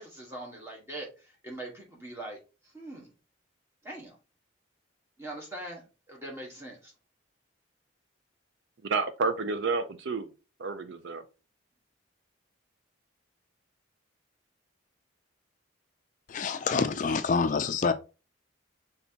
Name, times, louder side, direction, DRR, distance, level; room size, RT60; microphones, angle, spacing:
voice 1, 0.0-3.1 3.8-4.2 5.2-6.9, right 1 dB, 15° right, 1.3 m, -42 dB
voice 2, 8.8-10.3 10.6-11.2, right 4 dB, 65° right, 0.5 m, -30 dB
voice 3, 16.3-17.9, left 5 dB, 40° left, 0.3 m, -27 dB
5.6 x 3.4 x 2.7 m
head